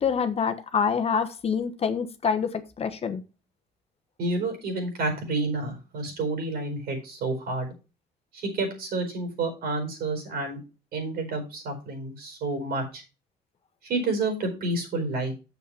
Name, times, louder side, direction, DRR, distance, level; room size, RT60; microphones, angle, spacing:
voice 1, 0.0-3.2, left 6 dB, 35° left, 1.0 m, -26 dB
voice 2, 4.2-7.7 8.3-10.6 10.9-13.0 13.8-15.3, right 2 dB, 65° right, 4.6 m, -29 dB
7.1 x 6.4 x 5.8 m
cardioid pair, 110°, 17 cm